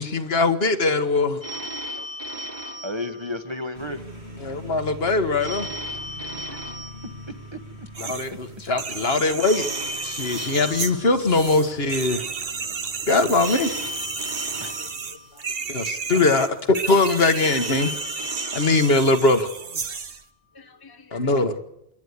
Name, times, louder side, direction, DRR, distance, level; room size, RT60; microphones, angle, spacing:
voice 1, 0.0-1.4 4.4-5.7 8.0-9.7 10.0-12.3 13.1-13.7 15.7-17.9 18.5-19.5 21.1-21.6, left 3 dB, 70° left, 1.7 m, -21 dB
Telephone, 1.4-3.9 5.4-7.9 9.4-11.9 13.4-15.9 17.4-19.9, equal, 45° right, 2.9 m, -36 dB
voice 2, 1.5-2.4 6.2-6.6 14.8-14.9 15.3-15.5 20.5-21.3, left 4 dB, 25° left, 0.8 m, -49 dB
voice 3, 2.8-4.0 6.3-6.4 7.5-8.4 9.2-9.3 14.6-14.9 17.8-17.9, left 1 dB, 25° right, 1.3 m, -34 dB
sound 1, 3.7-15.5, equal, 80° right, 7.1 m, -44 dB
sound 2, 7.9-8.3 8.7-20.2, right 5 dB, 65° right, 1.4 m, -32 dB
27.0 x 11.5 x 9.7 m
omnidirectional pair, 1.1 m